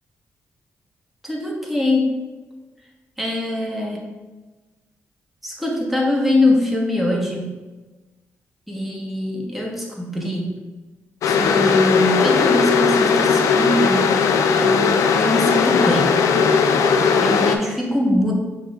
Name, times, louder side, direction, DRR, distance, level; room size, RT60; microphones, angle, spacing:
voice 1, 1.2-2.2 3.2-4.1 5.4-7.6 8.7-10.6 11.3-14.2 14.5-16.2 17.2-18.3, left 1 dB, 5° right, -2 dB, 1.1 m, -22 dB
sound 1, 11.2-17.6, left 5 dB, 80° left, 0.3 m, -17 dB
5.8 x 2.5 x 3.3 m, 1.2 s
cardioid pair, 65°, 5 cm